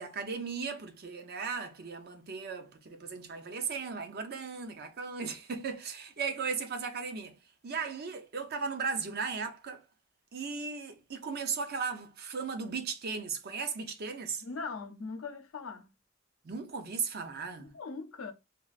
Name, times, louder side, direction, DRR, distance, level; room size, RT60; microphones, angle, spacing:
voice 1, 0.0-7.3 7.6-9.8 10.3-14.4 16.4-17.7, right 5 dB, 50° right, 0.6 m, -36 dB
voice 2, 14.4-15.9 17.6-18.3, left 4 dB, 90° left, 0.6 m, -40 dB
3.4 x 2.4 x 2.4 m
head